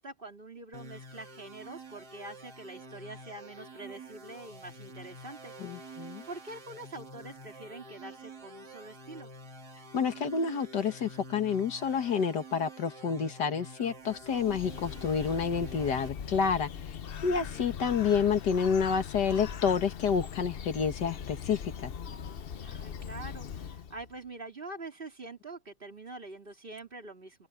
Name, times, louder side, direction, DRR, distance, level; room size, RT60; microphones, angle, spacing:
voice 1, 0.0-9.3 17.3-17.8 22.5-27.5, right 2 dB, 25° right, 3.7 m, -45 dB
sound 1, 0.7-16.1, right 1 dB, 55° right, 4.1 m, -48 dB
voice 2, 5.6-6.3 9.9-17.0 17.2-21.9, left 6 dB, 60° left, 2.1 m, -29 dB
Bird, 14.1-24.1, left 7 dB, 75° left, 0.5 m, -41 dB
open air
omnidirectional pair, 2.1 m